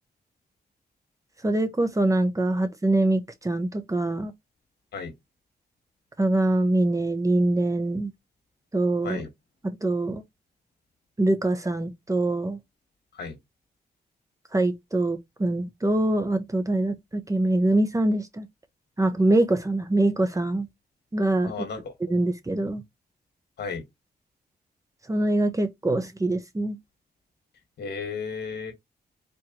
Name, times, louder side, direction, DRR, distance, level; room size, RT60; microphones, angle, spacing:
voice 1, 1.4-4.3 6.2-8.1 8.7-9.2 9.6-10.2 11.2-12.6 14.5-18.5 19.0-20.7 21.1-21.5 22.1-22.8 25.1-26.8, right 2 dB, 20° right, 1.0 m, -24 dB
voice 2, 21.4-21.9 23.6-23.8 27.8-28.7, left 5 dB, 70° left, 1.6 m, -33 dB
4.4 x 3.1 x 2.9 m
cardioid pair, 75°, 17 cm